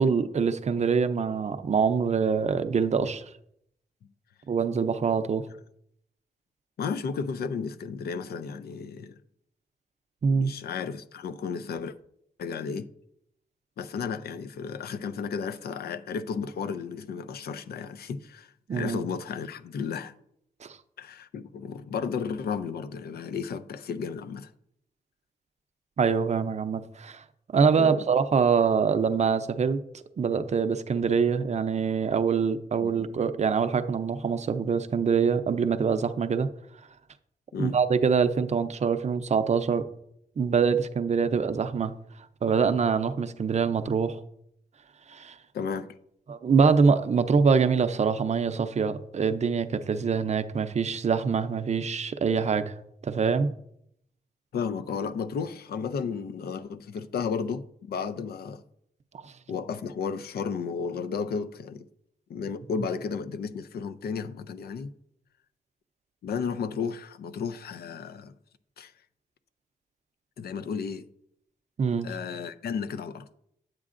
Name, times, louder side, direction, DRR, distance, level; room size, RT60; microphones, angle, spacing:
voice 1, 0.0-3.2 4.5-5.5 10.2-10.5 18.7-19.0 20.6-20.8 26.0-27.2 27.5-29.8 30.2-36.5 37.6-39.8 40.4-41.9 42.4-44.2 45.1-45.4 46.3-52.7 53.0-53.5 71.8-72.1, right 5 dB, 45° right, 0.5 m, -24 dB
voice 2, 6.8-9.2 10.3-11.9 12.4-12.9 13.8-20.1 21.0-24.5 27.7-28.0 32.8-33.0 37.5-37.8 45.5-46.0 54.5-58.6 59.5-61.8 62.3-64.9 66.2-68.3 68.8-68.9 70.4-71.1 72.0-73.3, left 6 dB, 85° left, 0.4 m, -33 dB
9.6 x 7.4 x 2.5 m
cardioid pair, 90°, 16 cm